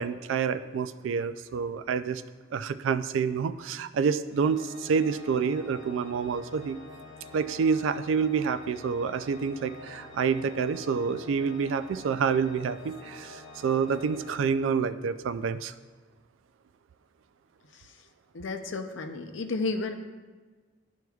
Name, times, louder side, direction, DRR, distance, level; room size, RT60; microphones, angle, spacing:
voice 1, 0.0-2.2 2.5-6.8 7.3-15.7, right 6 dB, 80° right, 12 dB, 0.3 m, -28 dB
Organ, 4.3-15.2, left 2 dB, 60° left, 1.6 m, -47 dB
voice 2, 18.3-19.9, left 3 dB, 75° left, 6 dB, 0.6 m, -32 dB
12.0 x 4.6 x 2.3 m, 1.4 s
head